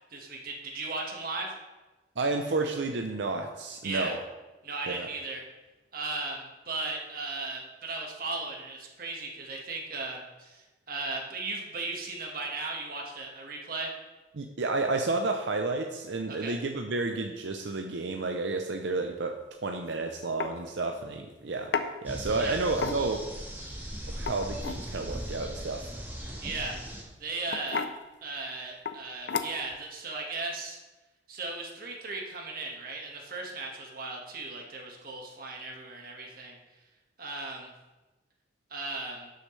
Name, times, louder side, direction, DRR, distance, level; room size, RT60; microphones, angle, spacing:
voice 1, 0.1-1.5 3.8-4.1 4.6-5.4 5.9-13.9 16.3-16.5 22.4-22.6 26.4-26.7 27.2-27.8 28.2-30.8 31.3-36.6 37.2-37.7 38.7-39.3, right 3 dB, 55° right, 0 dB, 1.6 m, -36 dB
voice 2, 2.2-4.2 4.9-5.1 14.3-23.2 24.1-25.8, right 3 dB, 90° right, 4 dB, 0.6 m, -31 dB
sound 1, 19.7-19.9 20.4-20.5 21.7-21.9 22.7-23.2 24.1-24.8 26.5-26.7 27.5-28.0 28.9-29.0 29.3-29.7, left 5 dB, 80° left, 0.6 m, -32 dB
sound 2, 22.0-27.0, equal, 10° right, 1.6 m, -39 dB
12.0 x 6.5 x 3.2 m, 1.1 s
head